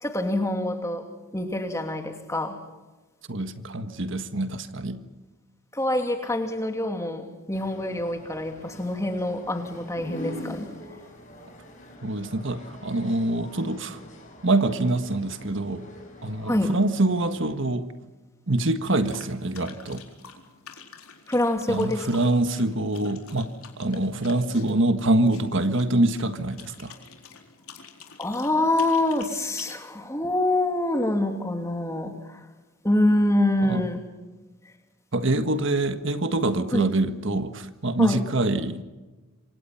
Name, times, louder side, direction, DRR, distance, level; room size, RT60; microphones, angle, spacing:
voice 1, 0.0-1.1 1.3-2.6 5.7-10.7 16.4-16.7 21.3-22.1 28.2-32.5 32.8-34.0 36.7-36.9 38.0-38.2, left 1 dB, 15° left, 5 dB, 2.7 m, -25 dB
voice 2, 3.3-5.0 12.0-14.0 14.4-15.8 16.2-17.9 18.5-20.0 21.7-23.5 23.8-26.9 33.6-33.9 35.1-38.8, right 2 dB, 55° right, 9 dB, 1.6 m, -25 dB
sound 1, 7.5-17.6, left 1 dB, 35° left, 7.1 m, -44 dB
sound 2, 18.9-29.8, left 6 dB, 80° left, 4.2 m, -48 dB
27.0 x 26.0 x 5.8 m, 1.2 s
head